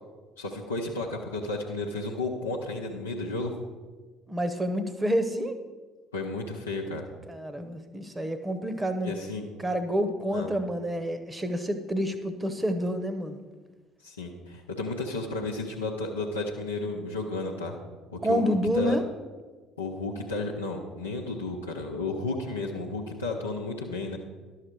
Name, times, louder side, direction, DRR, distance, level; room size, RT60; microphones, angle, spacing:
voice 1, 0.4-3.5 6.1-7.1 9.0-9.5 10.3-10.5 14.0-17.7 18.1-18.4 18.7-19.0 19.8-24.2, left 2 dB, 80° left, -2 dB, 0.7 m, -33 dB
voice 2, 4.3-5.6 7.3-9.1 9.6-13.4 18.2-19.0, equal, 15° right, 9 dB, 1.0 m, -28 dB
11.5 x 6.6 x 4.5 m, 1.3 s
figure-of-eight pair, 55°, 0 cm